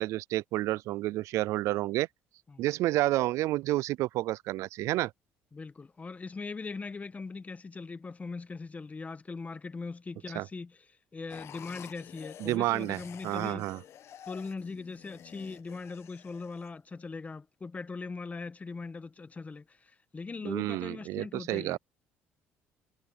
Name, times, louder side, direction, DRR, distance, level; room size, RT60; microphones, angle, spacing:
voice 1, 0.0-2.1 2.6-5.1 10.3-10.5 12.4-13.0 13.2-13.8 20.4-21.8, right 17 dB, 75° right, 0.4 m, -30 dB
voice 2, 5.5-10.8 11.1-13.7 14.3-21.8, left 4 dB, 30° left, 1.4 m, -40 dB
sound 1, 11.3-16.7, left 10 dB, 60° left, 1.4 m, -50 dB
supercardioid pair, 70°, 5 cm